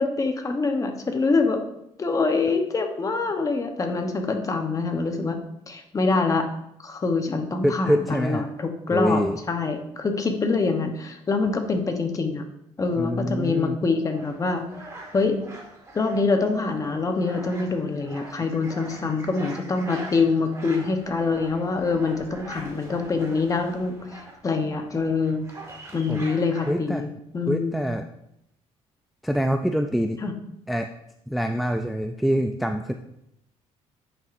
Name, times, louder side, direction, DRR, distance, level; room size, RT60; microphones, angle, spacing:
voice 1, 0.0-1.6 2.0-5.4 5.7-6.5 6.8-9.2 9.5-12.4 12.8-14.6 15.1-15.4 15.9-25.4 25.9-27.8 30.2-30.3, left 4 dB, 25° left, 5 dB, 0.9 m, -25 dB
voice 2, 7.6-8.4 8.9-9.4 13.0-13.8 26.1-26.2 26.7-27.0 27.5-28.1 29.2-30.2 30.7-30.9 31.3-32.9, equal, ahead, 5 dB, 0.3 m, -25 dB
sound 1, 14.1-26.7, right 1 dB, 25° right, 1.6 m, -43 dB
9.5 x 5.7 x 2.6 m, 0.79 s
cardioid pair, 115°, 12 cm